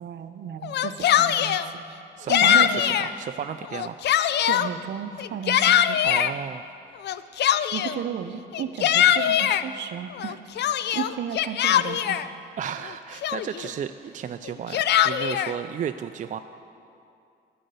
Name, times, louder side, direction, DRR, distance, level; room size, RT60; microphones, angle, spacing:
voice 1, 0.0-1.8 2.3-2.8 4.5-6.0 7.7-10.4 10.9-12.2, right 8 dB, 60° right, 9 dB, 0.7 m, -34 dB
Yell, 0.6-1.7 2.3-3.1 3.6-4.7 5.2-6.3 7.0-8.0 8.5-9.6 10.2-12.3 12.8-12.9 13.2-13.7 14.5-15.5, left 10 dB, 60° left, 0.4 m, -22 dB
voice 2, 2.2-4.0 6.0-6.7 11.7-11.8 12.6-16.4, right 8 dB, 40° right, 8 dB, 0.4 m, -33 dB
10.5 x 6.5 x 8.0 m, 2.5 s
cardioid pair, 90°, 20 cm